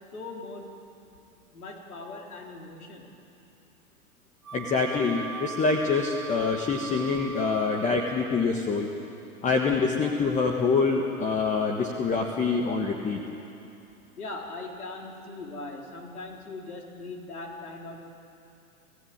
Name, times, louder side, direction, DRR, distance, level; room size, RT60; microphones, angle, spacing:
voice 1, 0.1-0.7 1.5-3.1 14.2-18.0, left 3 dB, 80° left, 0 dB, 4.4 m, -40 dB
Wind instrument woodwind instrument, 4.4-8.5, right 7 dB, 85° right, 1.4 m, -40 dB
voice 2, 4.5-8.9 9.4-13.2, left 4 dB, 15° left, 1 dB, 1.5 m, -25 dB
28.5 x 16.5 x 8.9 m, 2.8 s
hypercardioid pair, 125°, 43 cm